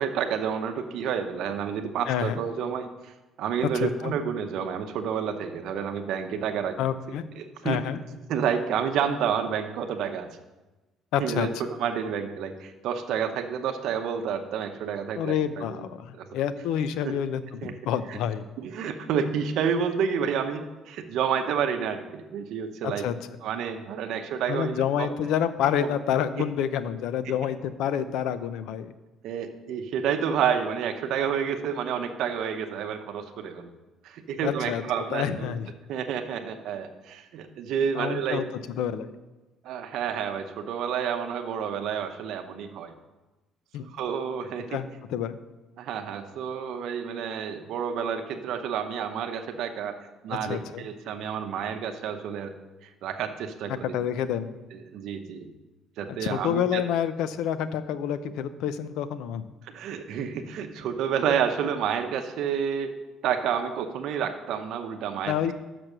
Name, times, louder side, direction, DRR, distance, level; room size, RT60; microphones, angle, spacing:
voice 1, 0.0-3.1 3.4-6.7 7.4-7.9 8.3-10.3 11.2-11.5 11.8-15.8 16.1-16.3 17.0-17.1 17.6-17.7 18.1-18.2 18.6-23.0 23.4-25.1 25.8-25.9 27.3-27.4 29.2-33.7 34.0-35.5 35.9-38.4 39.6-42.9 43.9-44.8 45.8-49.9 50.2-52.5 52.8-53.9 54.7-55.5 56.0-56.8 59.7-62.9 63.2-65.3, right 7 dB, 65° right, 6 dB, 0.7 m, -29 dB
voice 2, 2.1-2.4 3.7-4.1 6.8-7.2 7.6-8.0 11.1-11.5 15.2-18.4 22.8-23.2 24.5-28.9 34.4-34.8 35.1-35.7 37.9-38.5 38.8-39.1 43.7-43.9 44.7-45.4 50.3-50.9 53.7-54.5 56.1-59.4 65.3-65.5, left 9 dB, 80° left, 13 dB, 0.5 m, -28 dB
6.1 x 6.0 x 6.6 m, 1.1 s
cardioid pair, 170°, 0 cm